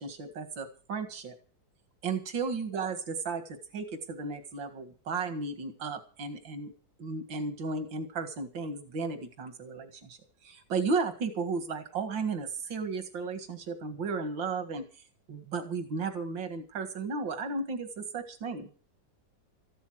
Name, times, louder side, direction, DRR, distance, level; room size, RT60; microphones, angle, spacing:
voice 1, 0.0-1.3 2.0-6.7 7.0-14.9 15.3-18.7, right 4 dB, 90° right, 8 dB, 2.5 m, -34 dB
14.5 x 12.5 x 6.2 m, 0.38 s
omnidirectional pair, 2.0 m